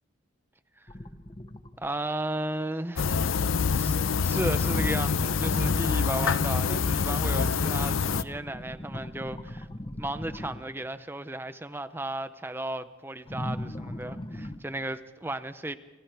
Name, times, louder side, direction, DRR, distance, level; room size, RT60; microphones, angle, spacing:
sound 1, 0.9-1.9 4.6-10.9 13.2-14.6, left 1 dB, 25° left, 0.8 m, -39 dB
voice 1, 1.8-3.4 3.7-4.0 4.2-9.7 10.0-15.8, right 1 dB, 10° right, 12 dB, 0.6 m, -34 dB
sound 2, 3.0-8.2, left 5 dB, 80° left, 0.6 m, -26 dB
29.0 x 26.5 x 3.4 m, 1.3 s
head